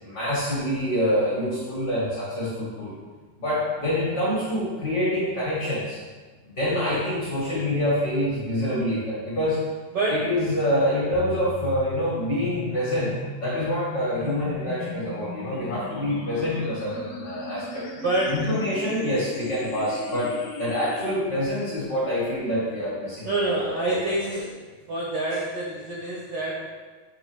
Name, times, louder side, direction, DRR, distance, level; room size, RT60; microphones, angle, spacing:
voice 1, 0.0-3.0 3.4-6.0 6.6-9.6 10.1-13.1 13.4-17.8 18.3-23.9, equal, 45° left, -7 dB, 1.5 m, -26 dB
voice 2, 9.9-10.3 18.0-18.5 23.2-24.5 24.9-26.7, right 2 dB, 65° right, -4 dB, 1.4 m, -26 dB
sound 1, 11.1-21.1, left 4 dB, 75° left, 1.3 m, -38 dB
6.8 x 3.9 x 6.0 m, 1.4 s
omnidirectional pair, 3.8 m